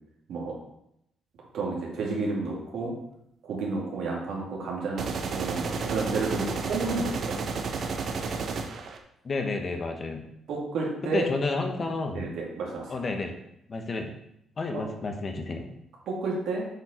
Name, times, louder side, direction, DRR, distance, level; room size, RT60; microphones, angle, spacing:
voice 1, 1.5-2.9 3.4-7.4 10.5-11.3 12.1-12.9 14.7-14.8 16.1-16.7, right 3 dB, 75° right, -2 dB, 2.5 m, -31 dB
sound 1, 5.0-9.0, right 4 dB, 60° right, 0.8 m, -31 dB
voice 2, 9.2-10.3 11.0-12.3 12.9-13.4 13.7-14.1 14.6-15.7, left 3 dB, 40° left, 4 dB, 1.1 m, -31 dB
8.1 x 4.5 x 4.4 m, 0.78 s
cardioid pair, 90°, 0 cm